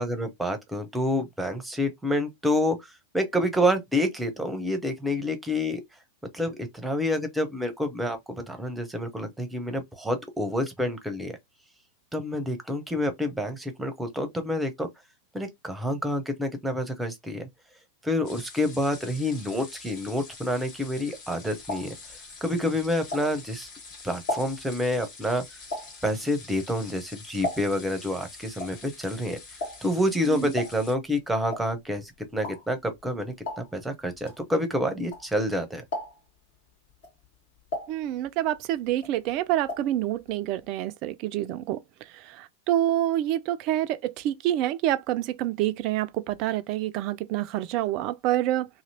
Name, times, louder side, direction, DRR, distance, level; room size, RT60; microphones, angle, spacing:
voice 1, 0.0-2.8 3.1-5.8 6.3-11.4 12.1-14.9 15.3-17.5 18.0-21.9 22.4-23.7 24.0-25.4 26.0-29.4 29.8-35.8, left 1 dB, 5° right, 0.8 m, -28 dB
sound 1, 18.2-30.9, left 4 dB, 40° left, 1.5 m, -46 dB
sound 2, 21.2-23.7 24.0-28.0 28.2-35.5 35.8-36.4 36.9-38.6 38.9-40.0 40.2-40.3 40.6-40.7, left 1 dB, 55° left, 1.7 m, -37 dB
voice 2, 37.9-41.8 42.3-48.7, right 13 dB, 40° right, 0.3 m, -27 dB
2.8 x 2.7 x 2.8 m
figure-of-eight pair, 90°, 0 cm